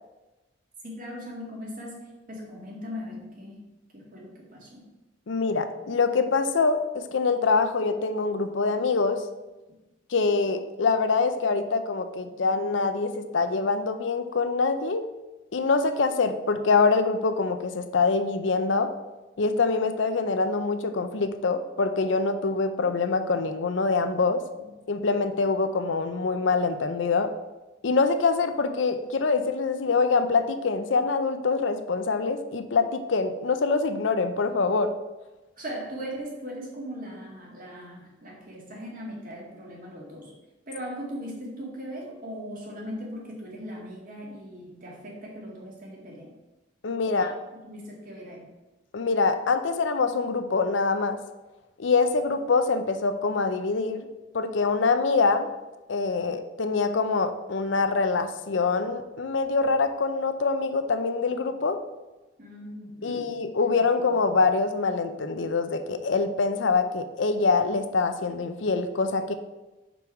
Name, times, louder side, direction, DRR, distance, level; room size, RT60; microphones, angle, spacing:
voice 1, 0.8-3.6 3.9-4.9 24.5-24.6 35.6-40.3 40.7-46.4 47.0-48.5 62.4-64.1, equal, 45° right, -3 dB, 2.1 m, -39 dB
voice 2, 5.3-9.2 10.1-15.1 15.5-18.9 19.4-24.4 24.9-27.3 27.8-34.9 46.8-47.3 48.9-51.2 51.8-54.1 54.3-55.5 55.9-61.8 63.0-69.3, left 4 dB, 75° left, 9 dB, 0.6 m, -25 dB
5.3 x 4.7 x 5.8 m, 1.1 s
head